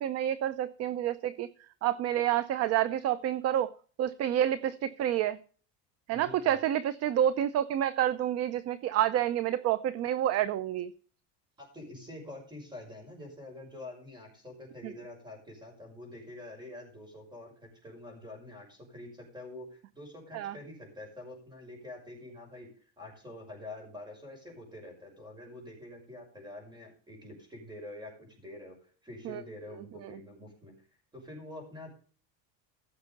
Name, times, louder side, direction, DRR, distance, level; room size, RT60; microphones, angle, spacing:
voice 1, 0.0-1.5 1.8-3.7 4.0-5.4 6.1-10.9 14.8-14.9 20.3-20.6 29.2-29.4 30.0-30.2, right 11 dB, 45° right, 0.6 m, -29 dB
voice 2, 6.1-6.5 11.6-22.7 23.0-30.7 31.1-31.9, left 1 dB, 10° right, 6.0 m, -46 dB
15.0 x 6.8 x 5.3 m
cardioid pair, 140°, 36 cm